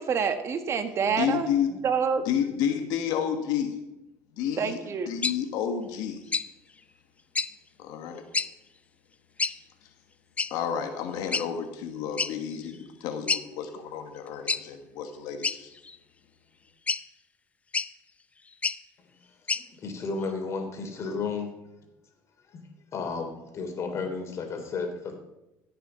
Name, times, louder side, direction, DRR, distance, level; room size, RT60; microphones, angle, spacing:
voice 1, 0.0-1.5 1.8-2.2 4.6-5.1, right 6 dB, 45° right, 9 dB, 1.3 m, -27 dB
voice 2, 1.1-1.7 2.2-3.8 4.4-4.8 5.1-6.2 7.8-8.2 10.5-15.7, left 8 dB, 75° left, 6 dB, 1.4 m, -30 dB
sound 1, 5.2-5.4 6.3-6.5 7.3-7.5 8.3-8.5 9.4-9.6 10.4-10.5 11.3-11.5 12.2-12.3 12.7-12.8 13.3-13.4 14.5-14.6 15.4-16.0 16.9-17.0 17.7-17.9 18.5-18.8 19.5-19.6, left 4 dB, 20° left, 0.5 m, -28 dB
voice 3, 19.8-21.5 22.9-25.1, left 4 dB, 45° left, 5 dB, 3.2 m, -32 dB
16.0 x 6.8 x 5.7 m, 0.93 s
supercardioid pair, 95°, 7 cm